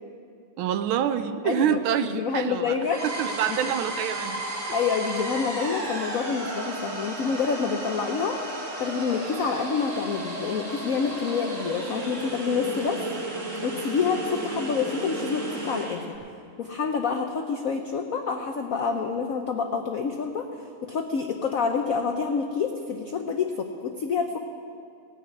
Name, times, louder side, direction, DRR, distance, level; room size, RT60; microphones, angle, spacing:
voice 1, 0.6-2.7 3.0-4.5, right 9 dB, 75° right, 11 dB, 1.4 m, -26 dB
voice 2, 1.4-1.8 2.1-3.0 3.5-3.6 4.7-8.4 8.8-13.0 13.6-16.1 16.6-20.5 20.8-24.4, left 5 dB, 80° left, 4 dB, 0.7 m, -27 dB
sound 1, 2.8-16.0, right 1 dB, 35° right, 2.0 m, -34 dB
17.0 x 6.2 x 9.3 m, 2.4 s
omnidirectional pair, 2.4 m